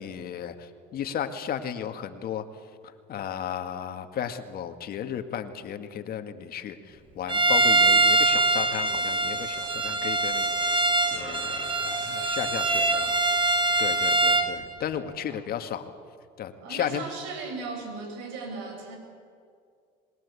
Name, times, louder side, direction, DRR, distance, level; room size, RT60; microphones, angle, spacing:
voice 1, 0.0-2.4 3.1-13.2 13.8-15.9 16.4-17.0, left 9 dB, 50° left, 7 dB, 2.0 m, -34 dB
Bowed string instrument, 7.3-14.5, right 2 dB, 25° right, 3.8 m, -23 dB
voice 2, 16.6-19.0, right 3 dB, 85° right, 4 dB, 7.4 m, -37 dB
27.0 x 21.5 x 8.4 m, 2.3 s
supercardioid pair, 105°, 19 cm